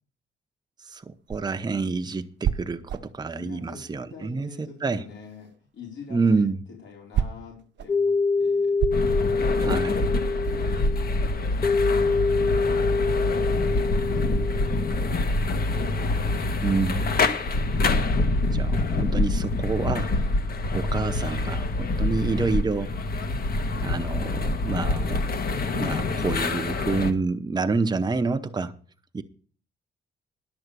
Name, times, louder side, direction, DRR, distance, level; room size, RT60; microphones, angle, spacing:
voice 1, 0.9-5.0 6.1-6.6 9.6-10.1 16.6-17.1 18.5-20.4 20.7-22.9 23.8-25.2 25.7-28.7 29.1-29.2, right 4 dB, 20° right, 0.9 m, -28 dB
sound 1, 0.9-4.7 5.0-10.8, right 9 dB, 65° right, 0.7 m, -32 dB
voice 2, 3.4-3.8 4.1-6.5 6.8-8.8 10.6-12.3 12.8-15.8, left 5 dB, 70° left, 4.5 m, -46 dB
sound 2, 7.9-15.2, left 4 dB, 20° left, 1.6 m, -25 dB
sound 3, 8.9-27.1, left 2 dB, 50° left, 1.5 m, -26 dB
11.0 x 7.0 x 6.8 m
cardioid pair, 90°, 20 cm